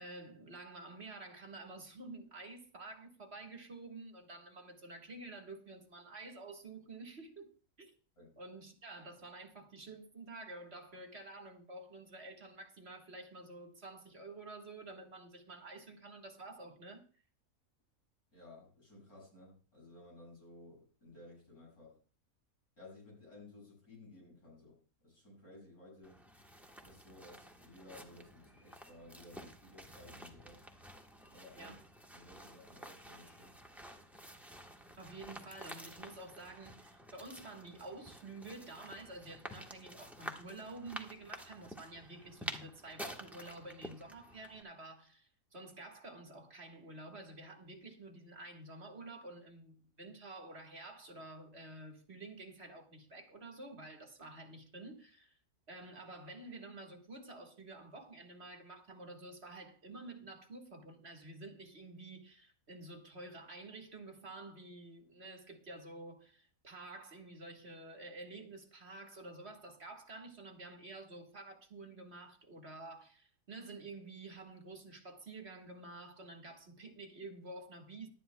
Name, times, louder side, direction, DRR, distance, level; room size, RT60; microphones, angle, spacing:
voice 1, 0.0-7.5 7.8-7.9 8.4-17.0 31.6-31.8 35.0-55.4 55.7-78.1, right 2 dB, 45° right, 2.0 m, -50 dB
voice 2, 18.3-22.0 22.8-26.2 26.8-30.6 31.3-31.8 32.1-33.6, left 2 dB, 80° left, 7.3 m, -56 dB
sound 1, 26.0-44.6, equal, ahead, 1.1 m, -50 dB
18.0 x 11.5 x 2.3 m
omnidirectional pair, 1.6 m